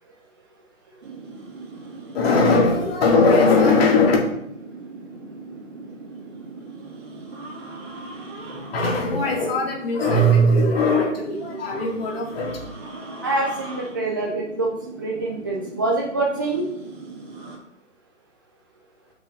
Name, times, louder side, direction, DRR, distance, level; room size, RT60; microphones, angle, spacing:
sound 1, 1.0-17.6, right 3 dB, 50° right, 2.5 m, -39 dB
voice 1, 2.1-4.2 8.4-12.6, left 2 dB, 50° left, -1 dB, 2.4 m, -19 dB
voice 2, 13.2-16.7, right 2 dB, 15° right, -4 dB, 0.4 m, -25 dB
6.9 x 6.1 x 3.1 m, 0.76 s
figure-of-eight pair, 130°, 39 cm